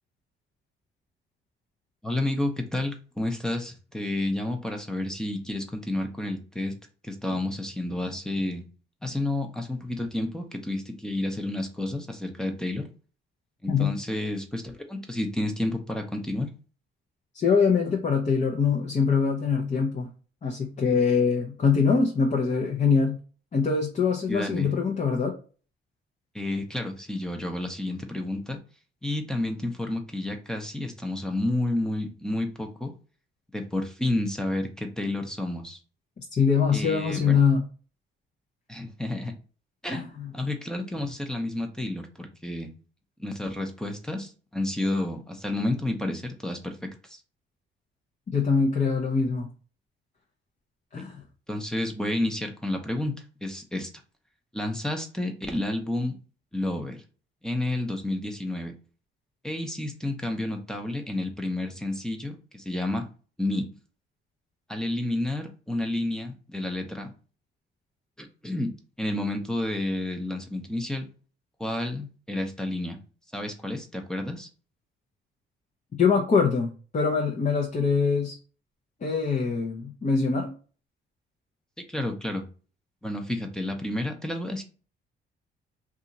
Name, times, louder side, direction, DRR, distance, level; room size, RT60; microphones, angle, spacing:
voice 1, 2.0-6.7 7.0-8.6 9.0-12.9 13.6-16.5 24.3-24.7 26.3-28.6 29.0-32.9 33.5-35.8 36.7-37.4 38.7-39.3 39.8-42.7 43.2-47.2 51.0-51.1 51.5-53.1 53.4-53.9 54.5-56.1 56.5-57.0 57.4-58.7 59.4-63.1 63.4-63.7 64.7-67.1 68.2-68.7 69.0-71.1 71.6-73.0 73.3-74.5 81.9-82.4 83.0-84.6, left 1 dB, 5° left, 4 dB, 0.7 m, -30 dB
voice 2, 17.3-20.1 20.4-23.2 23.5-25.3 36.2-37.6 39.9-40.3 48.3-49.5 50.9-51.2 76.0-78.3 79.0-80.5, left 5 dB, 35° left, 0 dB, 0.7 m, -23 dB
2.7 x 2.4 x 4.0 m, 0.37 s
cardioid pair, 90°, 20 cm